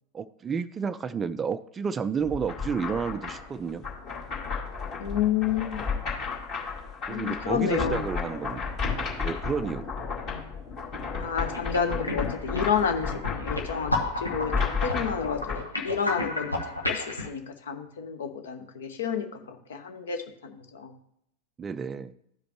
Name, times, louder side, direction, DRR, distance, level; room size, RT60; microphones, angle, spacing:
voice 1, 0.1-3.9 7.1-9.9 21.6-22.1, right 6 dB, 20° right, 15 dB, 0.3 m, -31 dB
sound 1, 2.2-15.6, left 5 dB, 35° left, 2.0 m, -33 dB
voice 2, 5.0-6.1 7.1-8.0 10.3-10.4 11.2-20.9, left 7 dB, 60° left, 7 dB, 0.9 m, -30 dB
sound 2, 11.0-11.2 11.5-17.3, left 2 dB, 85° left, 1.2 m, -32 dB
13.0 x 5.0 x 3.0 m, 0.75 s
figure-of-eight pair, 90°, 0 cm